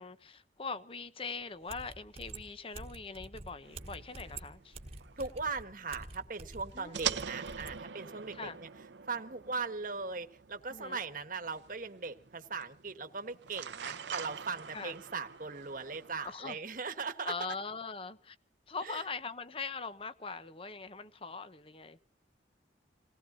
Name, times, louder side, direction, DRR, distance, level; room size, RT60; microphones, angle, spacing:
voice 1, 0.0-4.8 6.7-7.2 8.3-8.6 10.7-11.0 14.7-14.9 16.2-16.6 17.2-18.4 18.7-22.0, left 4 dB, 30° left, 0.8 m, -41 dB
sound 1, 1.4-1.5 1.7-7.8, right 2 dB, 35° right, 1.3 m, -48 dB
sound 2, 3.6-16.4, right 8 dB, 85° right, 0.7 m, -44 dB
voice 2, 5.2-8.7 9.1-17.3 18.8-19.0, right 4 dB, 50° right, 1.3 m, -39 dB
28.0 x 18.0 x 2.8 m
head